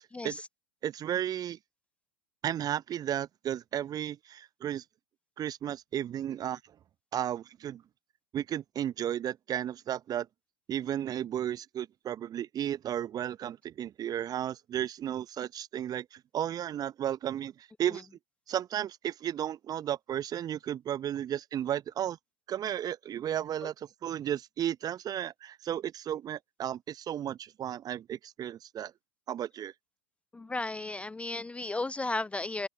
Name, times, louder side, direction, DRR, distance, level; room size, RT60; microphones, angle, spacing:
voice 1, 0.8-1.6 2.4-4.8 5.4-6.6 7.1-7.8 8.3-10.3 10.7-18.1 18.5-22.2 22.5-28.9 29.3-29.7, right 10 dB, 25° right, 0.8 m, -34 dB
voice 2, 30.3-32.7, left 2 dB, 10° left, 0.6 m, -34 dB
open air
figure-of-eight pair, 85°, 15 cm